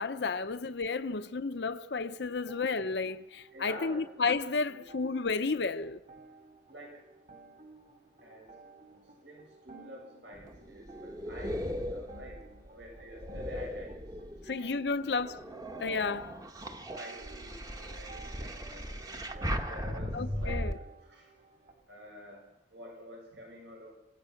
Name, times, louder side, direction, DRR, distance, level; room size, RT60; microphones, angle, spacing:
voice 1, 0.0-6.0 14.5-15.4 15.8-16.4 20.1-20.8, left 4 dB, 65° left, 0.7 m, -32 dB
sound 1, 2.0-21.7, right 4 dB, 45° right, 4.2 m, -55 dB
voice 2, 3.5-4.1 4.7-4.9 6.7-7.1 8.2-8.6 8.9-13.9 14.4-15.2 17.0-21.3 21.9-24.0, equal, 75° right, 7.1 m, -49 dB
sound 2, 10.3-14.6 15.1-20.7, equal, 20° right, 1.2 m, -38 dB
26.0 x 17.5 x 5.8 m
head